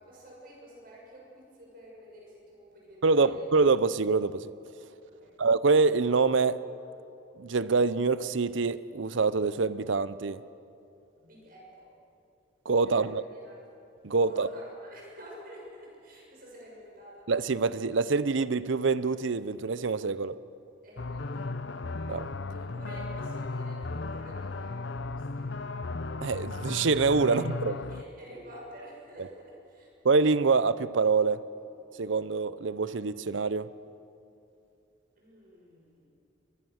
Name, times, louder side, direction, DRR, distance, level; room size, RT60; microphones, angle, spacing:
voice 1, 0.0-3.5 5.1-5.4 11.2-11.9 12.8-13.6 14.2-17.3 20.8-21.5 22.5-24.8 25.2-25.5 27.3-27.4 27.9-29.9 35.2-36.1, equal, 45° right, -3 dB, 6.8 m, -49 dB
voice 2, 3.0-4.5 5.4-6.6 7.4-10.4 12.7-13.2 14.0-14.5 17.3-20.4 22.1-22.3 26.2-27.7 30.0-31.4 32.0-33.7, right 4 dB, 75° right, 16 dB, 0.6 m, -25 dB
sound 1, 21.0-28.0, left 3 dB, 65° left, 0.7 m, -35 dB
23.5 x 20.0 x 6.5 m, 2.7 s
head